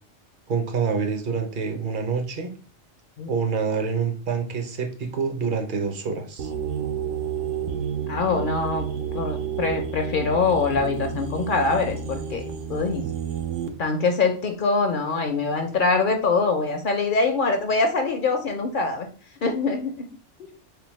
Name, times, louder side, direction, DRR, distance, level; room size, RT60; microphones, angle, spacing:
voice 1, 0.5-2.5 3.3-6.5, right 5 dB, 50° right, 5 dB, 0.7 m, -26 dB
sound 1, 6.4-13.7, right 7 dB, 90° right, 1.0 m, -30 dB
voice 2, 8.1-8.9 9.1-12.4 12.7-13.0 13.8-19.1 19.4-20.1 20.4-20.5, left 4 dB, 60° left, 4 dB, 0.5 m, -24 dB
3.8 x 3.4 x 3.1 m, 0.39 s
omnidirectional pair, 1.3 m